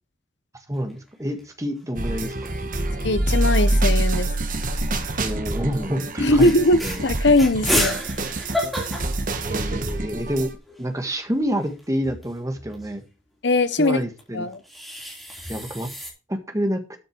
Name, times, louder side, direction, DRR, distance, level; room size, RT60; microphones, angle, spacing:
sound 1, 0.7-1.4 1.8-1.9 2.1-2.7 3.6-4.8 5.4-5.7 6.0-6.1 6.4-10.0 10.4-10.5 10.6-12.9 14.2-16.1, equal, ahead, 3.7 m, -31 dB
voice 1, 0.7-2.5 5.2-6.5 6.8-7.0 9.4-10.5 10.8-13.0 13.8-14.5 15.5-15.9 16.3-16.8, equal, 15° right, 1.6 m, -28 dB
sound 2, 2.0-10.6, right 2 dB, 45° right, 1.4 m, -25 dB
voice 2, 3.0-4.3 6.2-8.0 13.4-14.0 14.3-14.6, left 2 dB, 60° left, 1.0 m, -20 dB
13.0 x 6.5 x 4.6 m
head